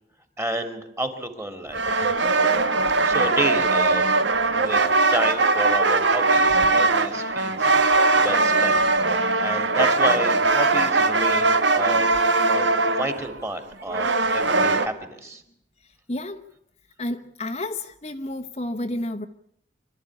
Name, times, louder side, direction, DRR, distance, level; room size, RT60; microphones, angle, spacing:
voice 1, 0.4-2.0 3.0-4.1 4.5-4.8 5.1-8.8 9.2-12.1 12.5-12.7 13.0-15.4, right 1 dB, 15° right, 7 dB, 2.9 m, -30 dB
sound 1, 1.7-14.9, right 3 dB, 80° right, 1.6 m, -20 dB
voice 2, 16.1-16.4 17.0-19.3, left 1 dB, 35° left, 6 dB, 1.1 m, -30 dB
26.5 x 13.5 x 9.8 m, 0.75 s
head